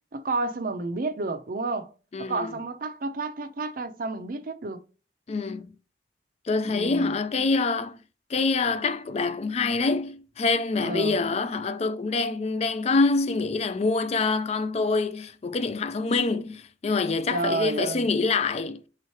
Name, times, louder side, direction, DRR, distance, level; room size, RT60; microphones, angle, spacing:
voice 1, 0.1-1.9 2.2-4.8 6.6-7.1 10.8-11.2 17.3-18.1, right 3 dB, 50° right, 0.6 m, -30 dB
voice 2, 2.1-2.6 5.3-5.7 6.5-8.0 8.3-18.8, left 3 dB, 35° left, 0.4 m, -26 dB
3.7 x 3.1 x 4.3 m
head